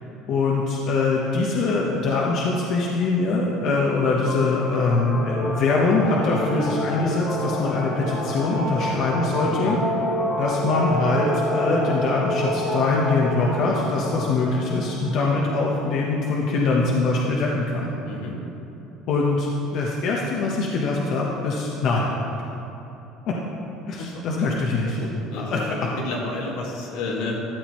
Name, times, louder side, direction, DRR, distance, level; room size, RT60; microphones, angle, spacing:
voice 1, 0.3-9.8 10.4-17.9 19.1-22.1 23.3-23.4 23.9-25.0 25.4-25.9, left 3 dB, 55° left, -3 dB, 1.0 m, -23 dB
sound 1, 4.2-16.1, equal, 35° left, 1.3 m, -28 dB
voice 2, 9.4-9.8 18.0-18.4 24.0-24.5 25.0-27.5, left 2 dB, 80° left, -2 dB, 1.9 m, -31 dB
13.0 x 9.1 x 3.1 m, 3.0 s
cardioid pair, 150°, 0 cm